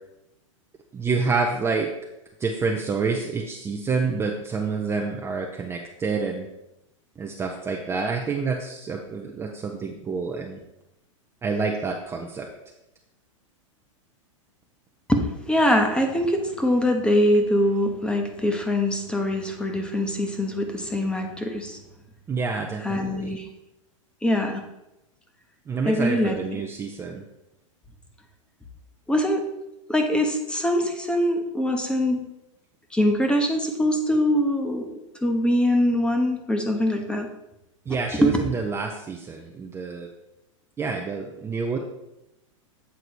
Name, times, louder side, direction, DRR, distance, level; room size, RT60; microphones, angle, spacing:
voice 1, 0.9-1.9 2.4-6.5 7.2-10.6 11.4-12.5 22.3-23.3 25.7-27.2 37.9-40.1 40.8-41.8, right 4 dB, 15° right, 1 dB, 0.6 m, -28 dB
voice 2, 15.1-21.8 22.8-23.5 24.2-24.6 25.8-26.6 29.1-29.5 29.9-32.2 32.9-34.9 35.2-37.3 37.9-38.0 38.2-38.3, left 1 dB, 5° left, 4 dB, 1.0 m, -23 dB
8.2 x 3.8 x 4.7 m, 0.89 s
hypercardioid pair, 120°, 17 cm